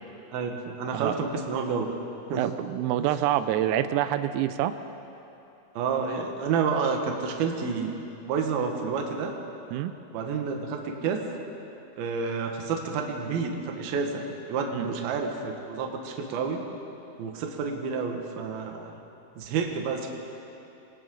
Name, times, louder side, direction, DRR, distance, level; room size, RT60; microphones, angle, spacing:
voice 1, 0.3-2.0 2.3-2.4 5.7-7.9 8.2-9.3 10.1-11.2 12.0-16.6 17.2-19.0 19.4-20.1, right 5 dB, 60° right, 2 dB, 2.9 m, -29 dB
voice 2, 2.4-4.8 9.7-10.0 14.7-15.1, right 12 dB, 85° right, 10 dB, 3.4 m, -27 dB
28.5 x 23.5 x 3.9 m, 2.9 s
omnidirectional pair, 6.0 m